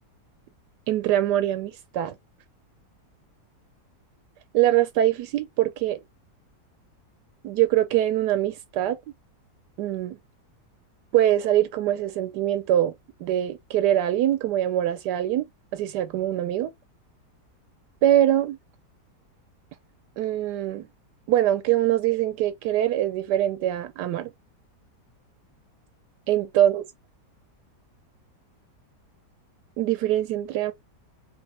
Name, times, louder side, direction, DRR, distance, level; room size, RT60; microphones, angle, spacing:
voice 1, 0.9-2.1 4.5-6.0 7.4-9.0 9.8-10.2 11.1-12.9 13.2-15.4 15.7-16.7 18.0-18.6 20.2-20.9 21.3-24.3 26.3-26.8 29.8-30.7, right 12 dB, 80° right, 1.2 m, -23 dB
3.5 x 3.3 x 2.9 m
omnidirectional pair, 1.8 m